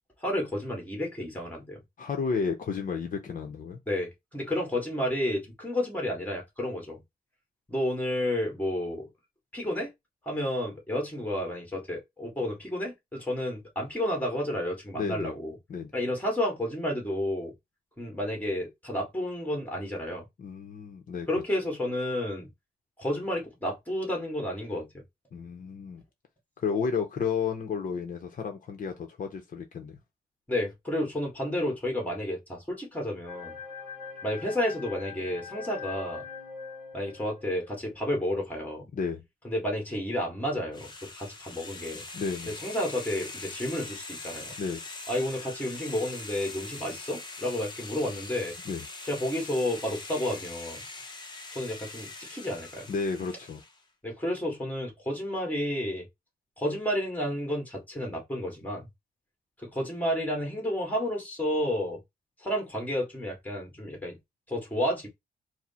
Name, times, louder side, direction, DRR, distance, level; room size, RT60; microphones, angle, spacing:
voice 1, 0.2-1.8 3.9-7.0 7.7-9.1 9.5-9.9 10.3-15.5 15.9-17.5 18.0-20.2 21.3-22.5 23.0-24.9 30.5-33.6 34.2-36.3 36.9-38.9 39.4-42.0 42.6-44.5 45.1-48.5 49.0-50.8 51.5-52.9 54.0-56.1 56.6-58.9 59.6-62.0 62.4-64.2 64.5-65.1, left 1 dB, 10° left, 1.8 m, -31 dB
voice 2, 2.0-3.8 14.9-15.3 15.7-15.9 20.4-21.3 25.3-26.0 26.6-30.0 38.9-39.2 42.1-42.5 44.6-44.8 48.6-48.8 52.9-53.6, left 5 dB, 55° left, 0.8 m, -32 dB
Stinger Build Up, 33.3-37.7, left 5 dB, 5° right, 1.6 m, -42 dB
sound 1, 40.7-53.8, left 3 dB, 25° left, 0.9 m, -42 dB
4.7 x 2.1 x 4.2 m
wide cardioid pair, 130°, 16 cm